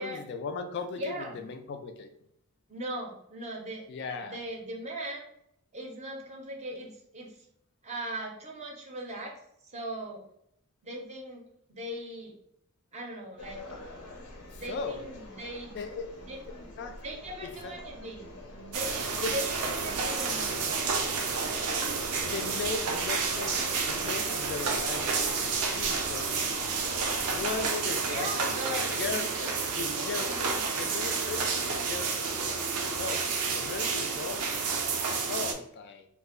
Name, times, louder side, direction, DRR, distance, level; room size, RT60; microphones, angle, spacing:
voice 1, 0.0-2.1 3.9-4.4 14.5-15.3 15.7-16.1 16.8-17.0 17.4-17.8 19.2-19.4 21.3-26.6 27.3-28.3 28.7-32.5 32.8-34.4 35.3-36.1, left 4 dB, 50° left, 7 dB, 0.3 m, -38 dB
voice 2, 1.0-1.4 2.7-3.8 4.2-5.3 5.7-7.4 7.8-9.4 9.7-10.2 10.8-11.4 11.7-12.3 12.9-13.6 14.5-15.8 16.2-16.7 17.0-20.8 28.0-28.9 30.0-30.6, right 1 dB, 30° right, 0 dB, 0.5 m, -39 dB
sound 1, 13.4-27.7, left 1 dB, 90° left, 0.6 m, -47 dB
sound 2, 18.7-35.5, right 5 dB, 85° right, 0.4 m, -30 dB
2.5 x 2.0 x 3.6 m, 0.75 s
head